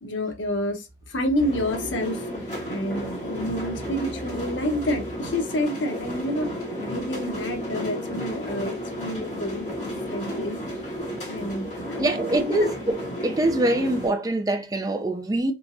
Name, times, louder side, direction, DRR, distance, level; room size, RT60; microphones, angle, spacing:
voice 1, 0.0-2.2 2.7-6.5 6.9-9.8 10.1-10.6 11.3-12.0 12.4-12.7, left 1 dB, 90° left, 1.0 m, -28 dB
sound 1, 1.4-14.1, equal, 40° left, 2.1 m, -33 dB
voice 2, 12.0-12.8 13.2-15.5, right 1 dB, 20° right, 0.4 m, -24 dB
3.6 x 3.0 x 2.5 m
head